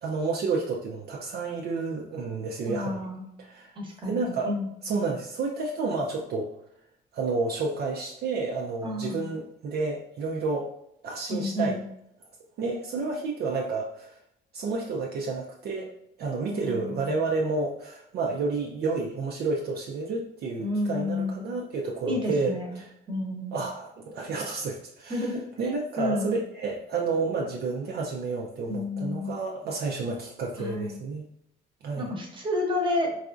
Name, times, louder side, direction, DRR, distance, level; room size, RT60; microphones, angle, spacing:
voice 1, 0.0-3.0 3.4-3.7 4.1-4.5 4.8-6.5 7.1-10.7 11.0-11.8 12.6-14.2 14.5-15.9 16.2-22.9 23.5-25.3 25.6-31.2 31.8-32.1, right 3 dB, 55° right, -1 dB, 0.5 m, -30 dB
voice 2, 2.6-3.3 3.8-4.7 8.8-9.3 11.3-11.8 16.5-17.1 20.6-21.5 22.1-22.7 23.1-23.5 25.1-25.4 26.0-26.3 28.7-29.4 30.6-31.0 32.0-33.1, left 2 dB, 25° right, -1 dB, 0.9 m, -30 dB
4.0 x 2.4 x 2.5 m, 0.77 s
cardioid pair, 115°, 20 cm